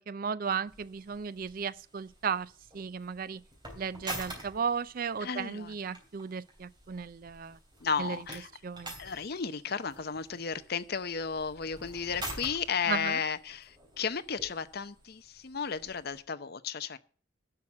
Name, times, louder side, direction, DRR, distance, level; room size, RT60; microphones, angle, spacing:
voice 1, 0.0-3.4 3.8-7.6 8.0-8.2 8.6-8.9 12.9-13.2, right 6 dB, 45° right, 0.4 m, -35 dB
sound 1, 0.7-16.2, right 1 dB, 25° right, 3.2 m, -47 dB
voice 2, 5.2-5.7 7.8-8.5 9.0-17.0, left 6 dB, 50° left, 0.7 m, -34 dB
10.5 x 5.7 x 8.6 m
head